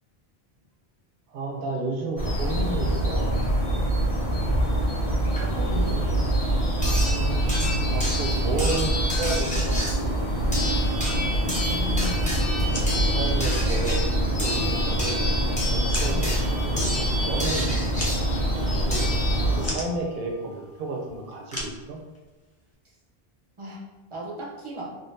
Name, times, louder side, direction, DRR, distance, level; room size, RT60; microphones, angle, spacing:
voice 1, 1.3-3.5 6.9-7.5 7.8-10.0 12.7-15.2 15.7-17.7 18.6-19.0 19.4-22.0, right 2 dB, 65° right, 1 dB, 0.8 m, -32 dB
sound 1, 2.2-19.7, right 1 dB, 85° left, 1.4 m, -25 dB
sound 2, 5.4-5.5 6.8-19.8 21.1-21.2 21.5-21.6, left 1 dB, 10° left, 0.7 m, -31 dB
voice 2, 5.4-6.0 11.4-12.4 16.1-16.3 23.6-23.8 24.1-24.9, left 1 dB, 35° right, -4 dB, 0.6 m, -35 dB
sound 3, 12.6-22.7, left 1 dB, 25° left, 0.3 m, -41 dB
3.7 x 2.1 x 2.6 m, 1.2 s
omnidirectional pair, 1.1 m